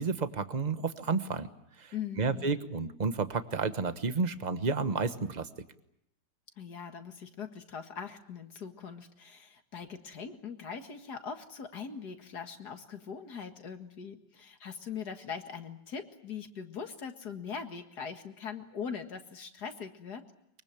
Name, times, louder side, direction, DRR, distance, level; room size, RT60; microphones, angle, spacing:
voice 1, 0.0-1.5 1.8-5.5, right 4 dB, 30° right, 10 dB, 1.1 m, -31 dB
voice 2, 1.9-2.5 6.6-20.2, left 6 dB, 65° left, 6 dB, 2.4 m, -41 dB
23.5 x 23.5 x 8.8 m, 0.78 s
omnidirectional pair, 1.9 m